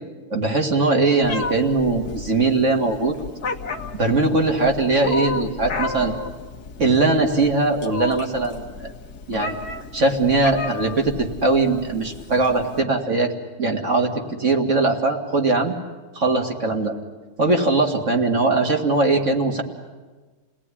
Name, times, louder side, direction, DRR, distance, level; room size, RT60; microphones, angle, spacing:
voice 1, 0.3-3.2 4.0-6.1 6.8-8.9 9.3-9.6 9.9-13.3 13.6-15.7 16.2-16.9 17.4-19.6, right 3 dB, 35° right, 3 dB, 2.2 m, -20 dB
Meow, 1.2-12.8, left 4 dB, 50° left, 1.7 m, -33 dB
29.0 x 19.0 x 9.9 m, 1.3 s
omnidirectional pair, 2.4 m